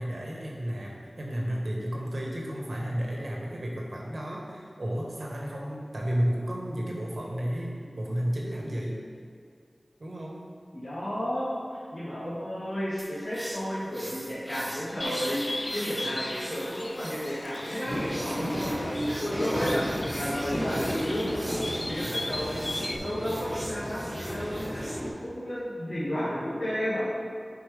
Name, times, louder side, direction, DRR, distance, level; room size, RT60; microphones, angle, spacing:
voice 1, 0.0-9.0 10.0-10.4 18.3-18.4, equal, 70° right, -2 dB, 1.4 m, -32 dB
voice 2, 10.7-19.8 20.1-22.6 23.0-24.8 25.2-27.1, equal, 55° left, -11 dB, 1.7 m, -32 dB
sound 1, 13.0-25.0, right 1 dB, 25° right, 0.6 m, -43 dB
Bird, 15.0-23.0, left 1 dB, 35° left, 0.4 m, -37 dB
sound 2, 17.9-25.1, equal, 5° right, 1.4 m, -33 dB
10.5 x 4.6 x 3.4 m, 2.1 s
wide cardioid pair, 60°, 0 cm